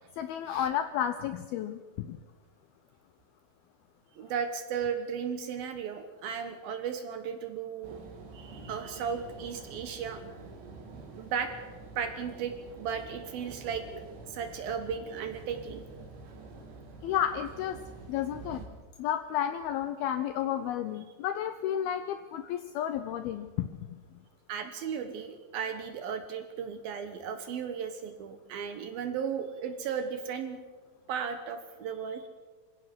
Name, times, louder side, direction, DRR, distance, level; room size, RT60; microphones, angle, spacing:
voice 1, 0.2-2.2 17.0-17.8 18.1-18.6 19.0-23.8, left 10 dB, 90° left, 9 dB, 2.2 m, -32 dB
voice 2, 4.2-8.0 8.3-10.2 10.9-11.5 12.0-13.8 14.3-15.8 24.5-30.6 31.1-32.3, right 7 dB, 65° right, 8 dB, 2.6 m, -35 dB
sound 1, 7.8-18.7, right 3 dB, 85° right, 4.9 m, -47 dB
26.5 x 16.5 x 6.1 m, 1.3 s
omnidirectional pair, 5.3 m